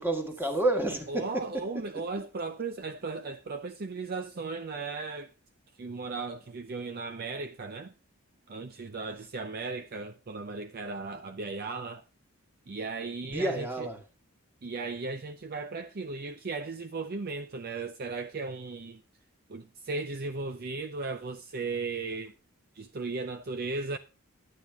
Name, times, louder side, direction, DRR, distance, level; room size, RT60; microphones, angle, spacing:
voice 1, 0.0-1.8 13.2-14.0, right 1 dB, 10° right, 1.7 m, -30 dB
voice 2, 1.1-5.3 5.7-7.9 8.5-12.1 12.7-13.9 14.6-19.0 19.5-22.4 22.7-24.0, right 3 dB, 45° right, 0.5 m, -36 dB
11.0 x 9.3 x 3.5 m
head